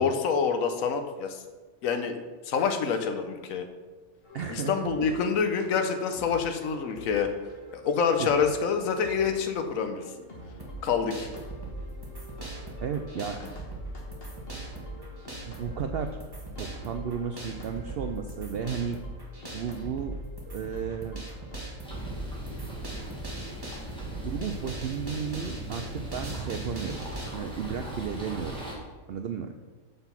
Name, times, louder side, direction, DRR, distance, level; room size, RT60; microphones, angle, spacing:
voice 1, 0.0-1.4 1.8-2.2 2.4-3.7 4.5-7.3 7.7-10.0 10.8-11.3, left 6 dB, 70° left, 7 dB, 1.2 m, -27 dB
sound 1, 4.2-21.7, equal, 45° left, 1.7 m, -47 dB
voice 2, 4.3-5.1 8.2-8.3 12.8-13.4 15.4-16.2 16.5-19.0 19.5-20.2 20.5-21.2 24.2-27.0 27.3-28.5 29.1-29.5, right 7 dB, 70° right, 6 dB, 0.6 m, -33 dB
sound 2, 10.6-27.3, right 1 dB, 15° right, 1.3 m, -40 dB
sound 3, 21.8-28.8, right 1 dB, 5° left, 1.9 m, -39 dB
6.9 x 5.8 x 5.8 m, 1.3 s
omnidirectional pair, 1.5 m